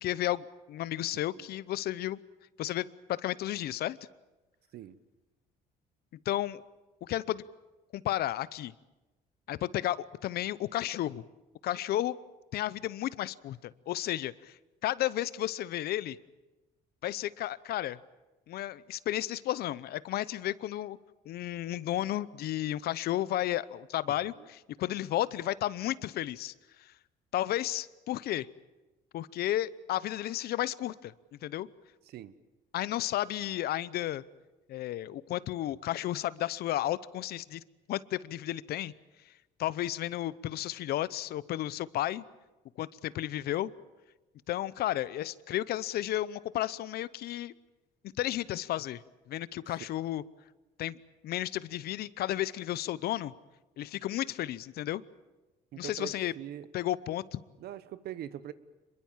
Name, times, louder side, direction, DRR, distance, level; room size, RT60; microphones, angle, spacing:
voice 1, 0.0-2.2 2.6-4.0 6.2-6.6 7.0-7.4 7.9-8.7 9.5-11.2 11.6-12.2 12.5-16.2 17.0-18.0 18.5-21.0 21.2-27.0 27.3-28.5 29.1-31.7 32.7-34.2 34.7-37.6 37.9-38.9 39.2-42.2 42.8-43.7 44.5-47.5 48.2-50.2 50.8-51.0 51.2-53.3 53.8-55.0 55.8-56.3 56.7-57.4, left 13 dB, 70° left, 18 dB, 0.8 m, -33 dB
voice 2, 55.7-56.7 57.6-58.5, right 11 dB, 70° right, 15 dB, 1.2 m, -42 dB
26.0 x 22.5 x 7.4 m, 1.1 s
cardioid pair, 110°, 17 cm